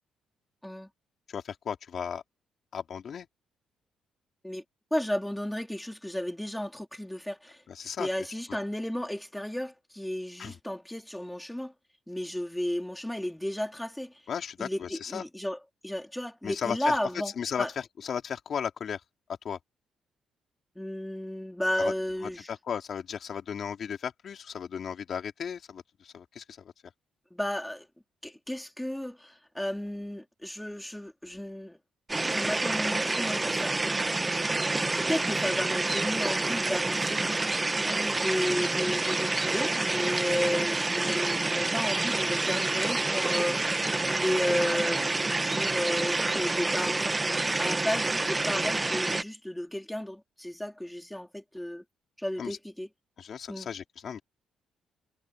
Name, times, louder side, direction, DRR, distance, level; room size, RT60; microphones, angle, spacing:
voice 1, 1.3-2.2 2.7-3.3 7.7-8.1 10.4-10.6 14.3-15.2 16.4-17.0 17.4-19.0 19.4-19.6 21.8-21.9 22.2-26.7 52.4-52.6 53.2-54.2, left 7 dB, 55° left, 3.8 m, -35 dB
voice 2, 4.9-7.6 8.0-11.7 12.1-14.1 14.6-15.6 15.8-17.3 17.6-17.7 20.8-22.5 27.3-27.8 28.2-31.8 32.2-33.7 35.0-37.3 37.8-43.7 44.1-45.1 45.4-47.2 47.6-51.8 52.2-52.9 53.5-53.7, left 1 dB, 5° left, 4.4 m, -33 dB
sound 1, 32.1-49.2, right 2 dB, 20° right, 1.3 m, -28 dB
cardioid pair, 90°, 0 cm